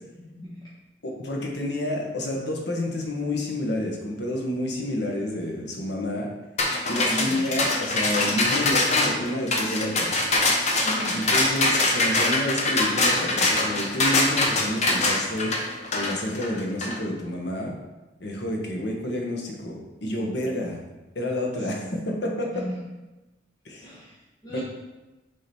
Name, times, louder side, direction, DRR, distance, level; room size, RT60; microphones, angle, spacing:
voice 1, 0.2-0.7 7.1-7.4 10.8-11.3 21.6-21.7 22.5-22.8 23.8-24.6, right 1 dB, 20° left, -8 dB, 1.1 m, -36 dB
voice 2, 1.0-6.3 6.9-10.2 11.1-15.5 15.9-17.7 18.2-20.8 21.1-22.6 23.6-23.9 24.5-24.6, left 1 dB, 60° left, 0 dB, 1.1 m, -29 dB
sound 1, 6.6-17.0, left 2 dB, 35° left, 0.8 m, -23 dB
6.5 x 3.8 x 4.3 m, 1.1 s
head